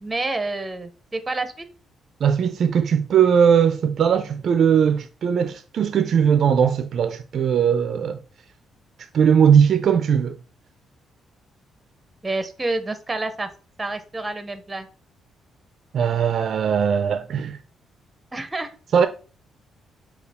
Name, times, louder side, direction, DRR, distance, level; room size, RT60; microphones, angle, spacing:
voice 1, 0.0-1.7 12.2-13.5 13.8-14.9 18.3-18.7, right 2 dB, 15° right, 0.6 m, -28 dB
voice 2, 2.2-8.2 9.1-10.4 15.9-17.6 18.9-19.1, right 7 dB, 55° right, 0.4 m, -19 dB
6.6 x 2.3 x 3.4 m
cardioid pair, 115°, 0 cm